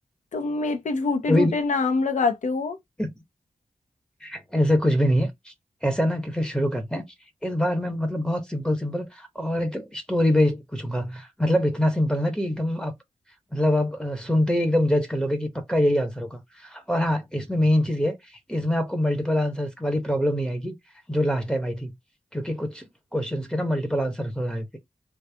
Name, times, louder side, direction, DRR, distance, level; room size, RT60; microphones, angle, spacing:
voice 1, 0.3-2.8, left 3 dB, 70° left, 0.9 m, -25 dB
voice 2, 4.2-5.5 5.8-7.0 7.4-12.9 13.5-20.8 21.1-21.9 22.3-24.8, equal, 5° left, 1.0 m, -24 dB
3.3 x 2.4 x 3.4 m
wide cardioid pair, 90°, 13 cm